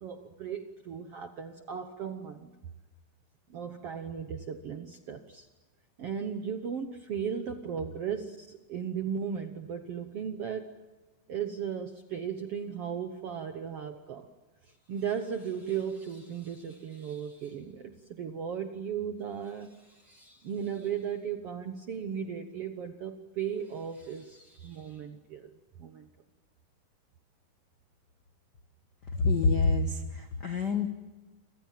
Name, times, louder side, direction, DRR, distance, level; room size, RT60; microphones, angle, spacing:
voice 1, 0.0-2.5 3.5-5.5 6.0-10.7 11.3-14.3 14.6-25.5 25.8-26.1, right 7 dB, 70° right, 7 dB, 1.4 m, -36 dB
voice 2, 29.2-30.9, left 3 dB, 85° left, 6 dB, 0.9 m, -26 dB
29.0 x 25.5 x 7.5 m, 1.1 s
omnidirectional pair, 4.3 m